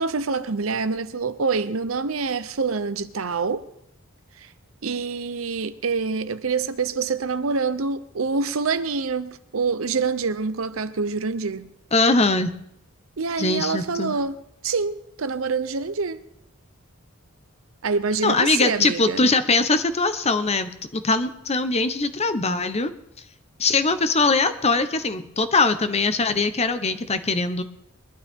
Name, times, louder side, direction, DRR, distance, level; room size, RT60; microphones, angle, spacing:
voice 1, 0.0-3.7 4.4-4.5 4.8-11.7 13.2-14.4 14.6-16.2 17.8-19.2, right 4 dB, 75° right, 0.8 m, -26 dB
voice 2, 11.9-12.5 13.4-14.2 18.2-22.9 23.6-27.6, left 3 dB, 30° left, 0.9 m, -21 dB
22.5 x 12.0 x 3.7 m
head